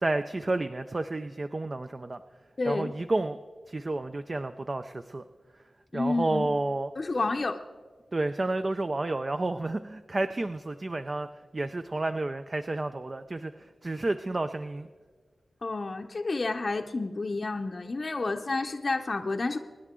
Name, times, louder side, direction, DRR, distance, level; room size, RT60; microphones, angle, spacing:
voice 1, 0.0-2.2 2.7-3.4 3.7-5.2 5.5-5.6 5.9-6.9 8.1-11.3 11.5-14.9, right 2 dB, 35° right, 10 dB, 0.4 m, -30 dB
voice 2, 2.6-2.9 5.9-6.5 7.0-7.6 15.6-19.6, left 3 dB, 40° left, 4 dB, 0.6 m, -30 dB
25.5 x 10.0 x 3.7 m, 1.5 s
wide cardioid pair, 115°, 0 cm